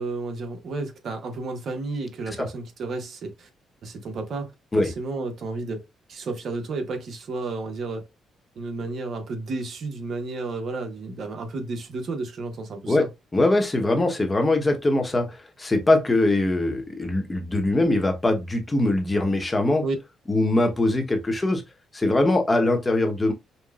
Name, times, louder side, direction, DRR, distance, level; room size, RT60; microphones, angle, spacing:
voice 1, 0.0-3.5 3.8-4.5 4.8-5.8 6.1-8.1 8.6-13.1 19.8-20.0, right 3 dB, 60° right, 1.0 m, -32 dB
voice 2, 13.3-19.8 20.3-21.6 21.9-23.3, left 2 dB, 20° left, 1.0 m, -22 dB
5.5 x 2.2 x 2.4 m
cardioid pair, 90°, 0 cm